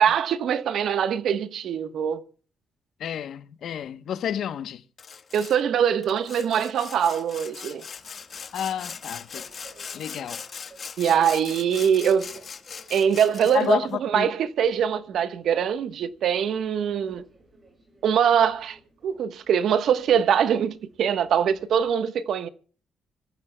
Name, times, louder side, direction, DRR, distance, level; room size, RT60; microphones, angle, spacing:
voice 1, 0.0-2.2 5.3-7.8 11.0-12.3 12.9-17.3 18.0-18.8 19.0-22.5, right 8 dB, 70° right, 1.1 m, -23 dB
voice 2, 3.0-4.8 8.5-9.4 9.9-10.4 13.5-14.3, left 9 dB, 70° left, 0.9 m, -30 dB
Sawing, 5.0-5.6 6.0-13.7, left 6 dB, 45° left, 1.5 m, -40 dB
Train, 7.9-21.9, right 3 dB, 30° right, 6.7 m, -56 dB
26.0 x 14.5 x 2.2 m
cardioid pair, 120°, 0 cm